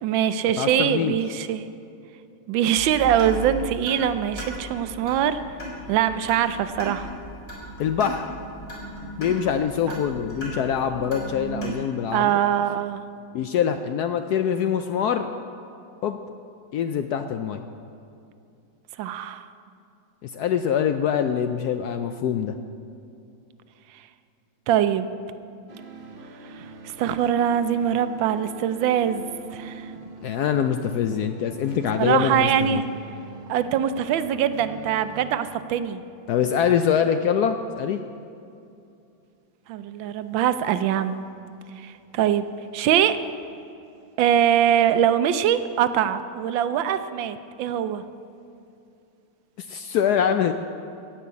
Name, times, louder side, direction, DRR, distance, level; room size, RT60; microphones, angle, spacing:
voice 1, 0.0-1.6 2.5-5.4 5.9-7.1 12.1-13.0 19.0-19.5 24.7-25.1 26.8-29.9 32.0-32.8 33.5-36.0 39.7-41.2 41.8-42.4 42.7-43.2 44.2-48.0, right 9 dB, 80° right, 12 dB, 1.4 m, -23 dB
voice 2, 0.6-1.2 7.8-8.3 9.2-12.4 13.3-15.3 16.0-16.2 16.7-17.6 20.2-22.5 30.2-32.8 36.3-38.0 49.6-50.5, left 8 dB, 75° left, 8 dB, 0.9 m, -24 dB
sound 1, 2.8-11.7, right 2 dB, 30° left, 4.1 m, -37 dB
sound 2, 25.7-35.4, right 4 dB, 50° right, 0.6 m, -42 dB
16.5 x 5.8 x 8.3 m, 2.6 s
omnidirectional pair, 2.1 m